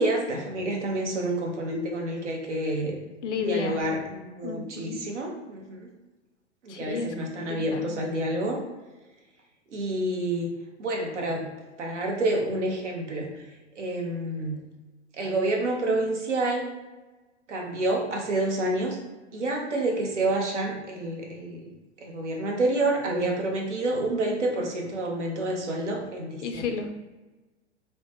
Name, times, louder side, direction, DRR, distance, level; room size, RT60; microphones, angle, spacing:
voice 1, 0.0-3.0 3.4-5.9 6.6-8.6 9.7-10.5 10.8-11.5 11.8-13.3 13.8-14.6 15.2-16.6 17.5-19.0 19.3-21.7 22.0-26.7, right 2 dB, 80° right, 0 dB, 0.8 m, -28 dB
voice 2, 3.2-3.8 4.4-5.0 6.7-7.9 26.4-27.0, left 5 dB, 80° left, 6 dB, 0.5 m, -32 dB
3.0 x 2.1 x 2.9 m, 1.2 s
hypercardioid pair, 105°, 35 cm